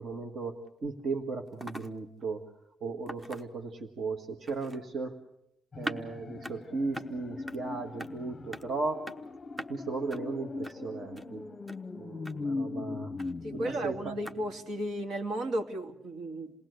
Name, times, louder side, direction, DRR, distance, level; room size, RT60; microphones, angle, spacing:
voice 1, 0.0-2.4 2.8-5.2 5.8-9.0 9.7-11.4 12.0-13.1 13.5-14.2, right 3 dB, 45° right, 3 dB, 1.7 m, -36 dB
sound 1, 0.7-0.8 1.0-1.1 1.5-1.9 2.2-2.3 3.1-3.7 4.5-4.8 5.8-6.0 6.4-6.6 6.9-7.1 7.5-7.6 8.0-8.1 8.5-8.6 9.1-9.2 9.6-9.7 10.1-10.2 10.6-10.8 11.2-11.3 11.7-11.8 12.2-12.3 13.2-13.3 14.2-14.4, equal, 15° right, 1.0 m, -40 dB
sound 2, 5.7-14.8 15.2-15.3, left 3 dB, 25° left, 0.8 m, -40 dB
voice 2, 13.4-16.5, right 1 dB, 65° right, 4 dB, 2.4 m, -34 dB
28.0 x 19.5 x 8.1 m, 0.78 s
cardioid pair, 165°, 0 cm